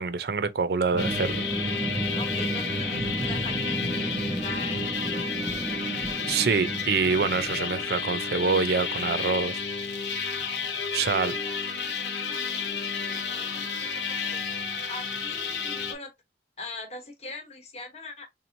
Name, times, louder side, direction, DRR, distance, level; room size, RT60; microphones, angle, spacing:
voice 1, 0.0-1.4 6.3-9.6 10.9-11.3, right 5 dB, 60° right, 0.5 m, -26 dB
sound 1, 0.9-8.5, right 2 dB, 20° right, 0.6 m, -33 dB
sound 2, 1.0-15.9, left 5 dB, 85° left, 0.8 m, -31 dB
voice 2, 2.1-5.9 10.9-14.4 14.9-16.1 16.6-18.3, left 2 dB, 35° left, 1.0 m, -42 dB
3.7 x 3.0 x 2.6 m
head